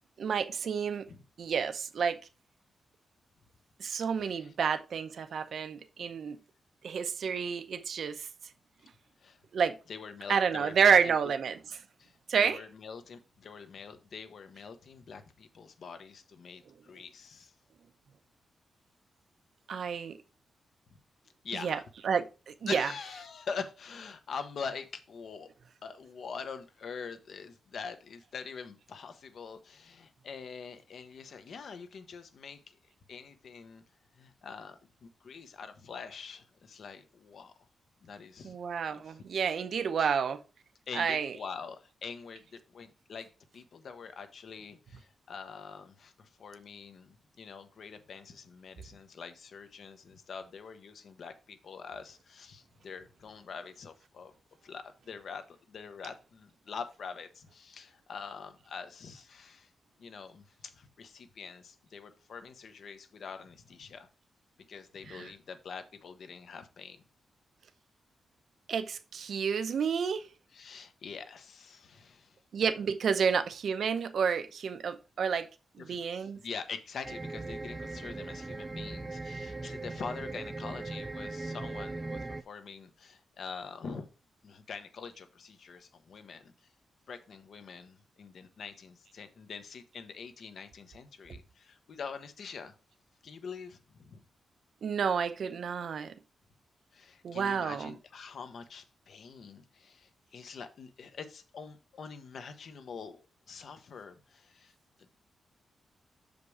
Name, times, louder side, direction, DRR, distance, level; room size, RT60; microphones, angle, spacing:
voice 1, 0.2-1.1 1.4-2.2 3.8-6.4 6.8-8.2 9.5-9.7 10.3-11.6 12.3-12.6 19.7-20.1 21.5-23.0 38.4-40.4 40.9-41.3 65.1-65.3 68.7-70.2 72.5-75.5 75.8-76.4 94.8-96.1 97.2-97.9, right 6 dB, 65° right, 0.7 m, -30 dB
voice 2, 4.1-4.5 9.2-9.4 9.9-11.1 12.0-12.2 12.4-17.5 21.4-21.9 22.7-25.5 25.8-32.8 33.1-33.8 34.1-37.5 38.0-38.6 38.9-39.2 40.0-40.1 40.9-54.3 54.6-59.7 60.0-64.1 64.7-67.0 70.5-72.4 75.8-84.1 84.4-86.5 87.1-92.7 93.2-94.2 96.9-105.1, left 5 dB, 60° left, 1.0 m, -44 dB
sound 1, 77.0-82.4, right 2 dB, 15° right, 0.4 m, -39 dB
6.7 x 5.2 x 4.7 m
wide cardioid pair, 145°, 0 cm